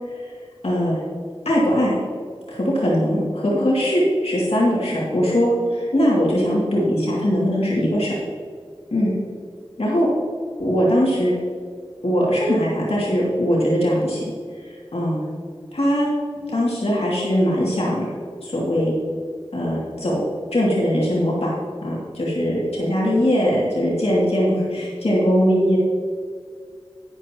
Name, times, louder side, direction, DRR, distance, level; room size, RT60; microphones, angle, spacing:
voice 1, 0.6-0.9 1.4-2.0 2.5-8.1 8.9-9.1 9.8-10.1 10.6-11.3 12.0-14.3 14.7-15.2 15.7-16.1 16.5-18.0 18.4-18.9 19.5-20.2 20.5-21.5 21.8-25.8, equal, 85° left, -6 dB, 2.6 m, -20 dB
11.5 x 9.3 x 3.1 m, 2.1 s
wide cardioid pair, 50°, 10 cm